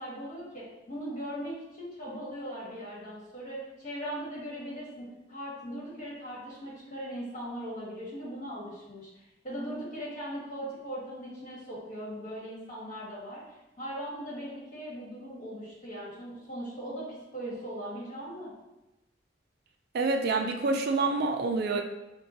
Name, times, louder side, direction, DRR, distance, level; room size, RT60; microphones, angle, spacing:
voice 1, 0.0-9.1 9.4-18.5, equal, 40° left, -7 dB, 1.5 m, -39 dB
voice 2, 19.9-21.8, right 3 dB, 55° right, 5 dB, 0.3 m, -27 dB
5.6 x 2.2 x 2.7 m, 0.99 s
head